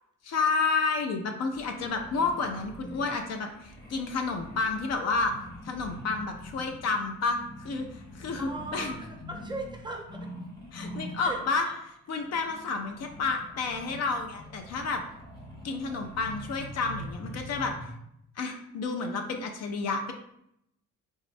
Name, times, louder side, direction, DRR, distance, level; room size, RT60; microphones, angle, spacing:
voice 1, 0.2-5.3 5.6-7.9 8.1-8.9 10.7-15.0 15.6-17.7 18.4-20.1, left 4 dB, 60° left, 5 dB, 0.5 m, -30 dB
sound 1, 1.5-11.7 12.1-17.9, equal, 30° left, 1.0 m, -44 dB
voice 2, 8.4-10.2 11.2-11.7, right 2 dB, 15° right, 1 dB, 0.5 m, -39 dB
3.5 x 2.0 x 2.5 m, 0.76 s
cardioid pair, 90°, 30 cm